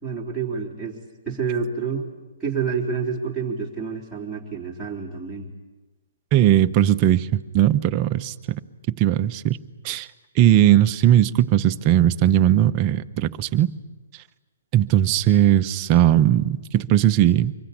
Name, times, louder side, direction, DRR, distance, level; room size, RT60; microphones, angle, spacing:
voice 1, 0.0-2.1 2.4-5.5, right 5 dB, ahead, -3 dB, 3.6 m, -28 dB
voice 2, 6.3-8.3 9.0-9.6 9.8-10.1 10.4-13.7 14.7-17.5, right 12 dB, 25° right, 8 dB, 0.8 m, -18 dB
25.5 x 22.5 x 8.7 m, 1.2 s
hypercardioid pair, 165°, 0 cm